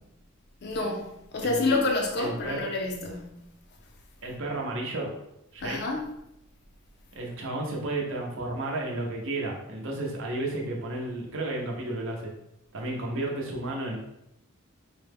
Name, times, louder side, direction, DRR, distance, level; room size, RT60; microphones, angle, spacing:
voice 1, 0.6-3.4 5.6-6.1, left 3 dB, 50° left, 1 dB, 0.5 m, -28 dB
voice 2, 1.4-1.9 2.2-2.7 4.2-5.2 5.5-5.8 7.1-12.3 12.7-14.0, right 2 dB, 65° right, -1 dB, 0.7 m, -32 dB
4.6 x 2.1 x 3.4 m, 0.84 s
head